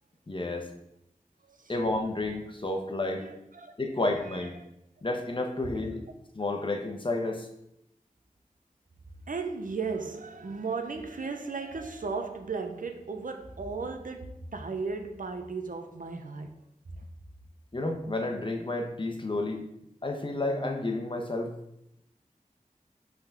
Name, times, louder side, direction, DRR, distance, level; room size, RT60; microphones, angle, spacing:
voice 1, 0.3-0.7 1.7-3.3 3.8-4.5 5.0-6.0 6.3-7.5 17.7-19.7 20.0-21.5, left 2 dB, 35° left, 1.0 m, -31 dB
voice 2, 3.1-3.7 4.2-4.6 9.3-16.5 16.9-17.0, right 4 dB, 75° right, 0.7 m, -36 dB
5.6 x 3.9 x 5.8 m
wide cardioid pair, 75°, 14 cm